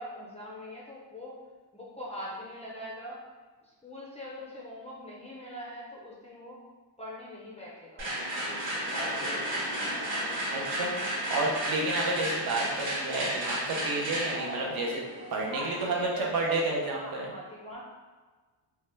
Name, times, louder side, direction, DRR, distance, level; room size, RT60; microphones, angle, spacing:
voice 1, 0.0-1.4 1.7-3.2 3.6-6.6 7.0-8.1 8.4-9.3 15.5-16.6 16.9-17.8, equal, 15° left, -5 dB, 0.4 m, -42 dB
sound 1, 8.0-15.9, right 1 dB, 85° right, 1.3 m, -33 dB
voice 2, 10.5-10.9 11.3-15.0 15.3-16.1 16.3-17.3, right 2 dB, 50° right, -2 dB, 0.7 m, -30 dB
2.7 x 2.2 x 3.3 m, 1.4 s
cardioid pair, 155°, 46 cm